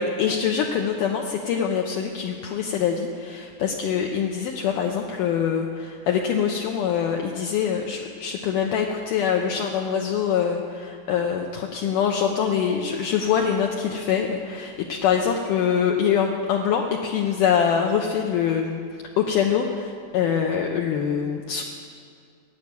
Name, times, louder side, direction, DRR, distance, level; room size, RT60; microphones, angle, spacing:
voice 1, 0.0-18.8 19.2-21.6, left 7 dB, 75° left, 1 dB, 2.1 m, -24 dB
17.0 x 6.9 x 9.4 m, 2.2 s
omnidirectional pair, 4.2 m